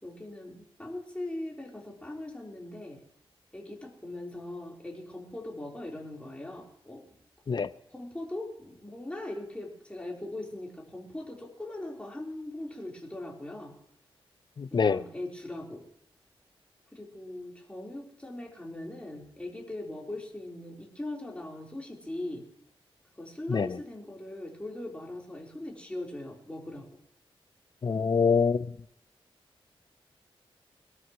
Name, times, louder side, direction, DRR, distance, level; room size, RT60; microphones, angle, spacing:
voice 1, 0.0-3.0 3.5-7.1 7.9-13.8 14.7-15.8 16.9-22.5 23.2-27.0, left 1 dB, 10° left, 4.1 m, -40 dB
voice 2, 14.6-15.0 23.5-23.7 27.8-28.7, left 5 dB, 50° left, 0.7 m, -25 dB
22.5 x 13.0 x 3.1 m
wide cardioid pair, 95°, 10 cm